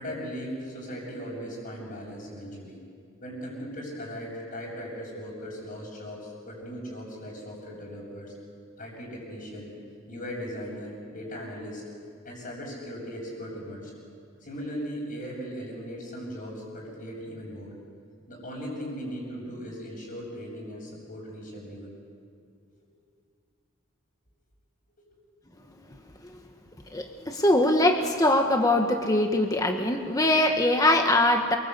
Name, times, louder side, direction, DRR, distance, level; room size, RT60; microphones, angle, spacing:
voice 1, 0.0-2.8 3.2-8.3 8.8-9.7 10.1-11.8 12.2-13.9 14.4-17.7 18.3-21.9 22.7-22.8, equal, 45° left, -8 dB, 7.2 m, -38 dB
voice 2, 26.9-31.6, left 1 dB, 20° left, 3 dB, 1.4 m, -22 dB
28.5 x 24.0 x 8.2 m, 2.3 s
head